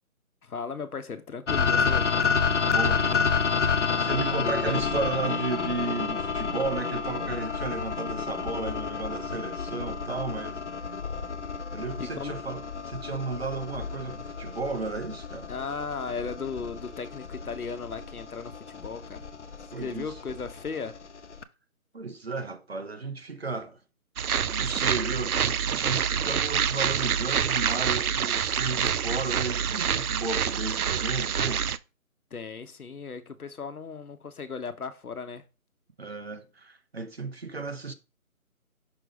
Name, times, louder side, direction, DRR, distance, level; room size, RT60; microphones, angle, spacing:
voice 1, 0.4-2.1 12.0-12.4 15.5-19.3 19.6-21.0 32.3-35.4, left 5 dB, 85° left, 1.1 m, -36 dB
sound 1, 1.5-21.4, left 5 dB, 55° left, 0.6 m, -30 dB
voice 2, 2.5-3.3 4.0-10.6 11.7-15.5 19.7-20.1 21.9-23.8 24.5-31.6 36.0-37.9, right 3 dB, 45° right, 0.8 m, -34 dB
sound 2, 24.2-31.8, right 8 dB, 85° right, 0.6 m, -27 dB
6.0 x 3.4 x 5.0 m
figure-of-eight pair, 170°, 43 cm